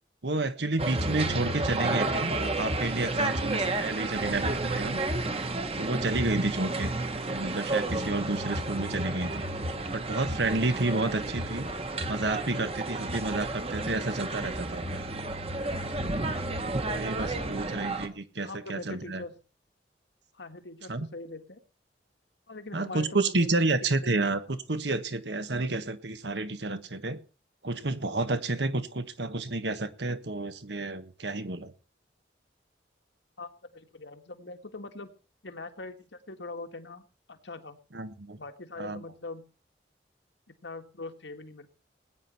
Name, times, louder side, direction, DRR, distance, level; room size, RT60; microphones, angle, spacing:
voice 1, 0.2-5.0 5.8-6.9 7.3-9.4 9.9-11.7 12.1-15.1 16.7-19.2 20.9-21.1 22.7-27.2 27.6-31.7 37.9-38.4 38.8-39.0, right 2 dB, 75° right, 11 dB, 1.4 m, -30 dB
sound 1, 0.8-18.1, right 2 dB, 35° right, 1.5 m, -31 dB
voice 2, 17.3-17.6 18.4-19.4 20.3-21.6 22.5-23.7 24.0-24.2 33.4-35.1 35.4-37.0 37.3-37.8 38.4-39.5 40.5-41.7, left 2 dB, 90° left, 7 dB, 1.9 m, -42 dB
19.5 x 9.8 x 4.5 m, 0.36 s
head